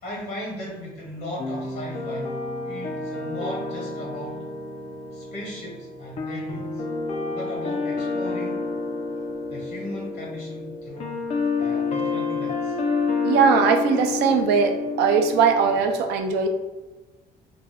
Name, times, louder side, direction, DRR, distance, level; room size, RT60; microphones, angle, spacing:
voice 1, 0.0-2.4 2.6-4.5 5.1-6.8 7.3-8.7 9.5-11.2 11.6-12.8, left 1 dB, 70° left, -3 dB, 1.1 m, -36 dB
sound 1, 1.4-15.8, left 4 dB, 40° left, 0.4 m, -29 dB
voice 2, 13.2-16.5, right 6 dB, 85° right, 5 dB, 0.4 m, -20 dB
2.5 x 2.2 x 3.3 m, 1.2 s
cardioid pair, 110°, 17 cm